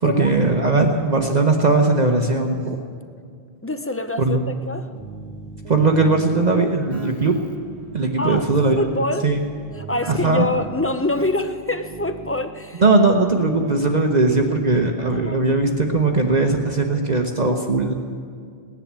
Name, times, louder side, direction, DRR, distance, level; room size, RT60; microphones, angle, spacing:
voice 1, 0.0-2.8 4.2-4.5 5.7-7.4 7.9-9.4 10.1-10.5 12.8-17.9, right 3 dB, 45° right, 2 dB, 1.0 m, -19 dB
voice 2, 3.6-4.9 8.2-8.5 8.8-9.3 9.7-12.8 15.1-15.5, left 2 dB, 15° left, 8 dB, 0.5 m, -25 dB
Keyboard (musical), 4.9-12.8, right 4 dB, 80° right, 1.4 m, -38 dB
18.0 x 10.5 x 7.4 m, 2.2 s
omnidirectional pair, 1.1 m